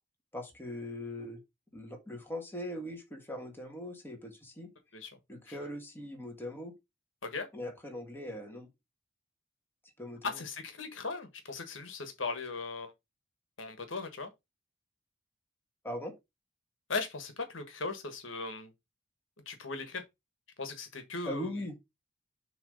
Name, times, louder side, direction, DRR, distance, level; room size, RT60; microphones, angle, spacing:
voice 1, 0.3-1.4 1.7-4.7 5.3-6.7 7.5-8.7 10.0-10.4 15.8-16.1 21.3-21.7, left 1 dB, 10° left, 1.7 m, -40 dB
voice 2, 10.2-12.9 13.6-14.3 16.9-18.7 19.5-20.0 20.6-21.5, left 4 dB, 80° left, 1.4 m, -38 dB
7.0 x 3.1 x 5.1 m
head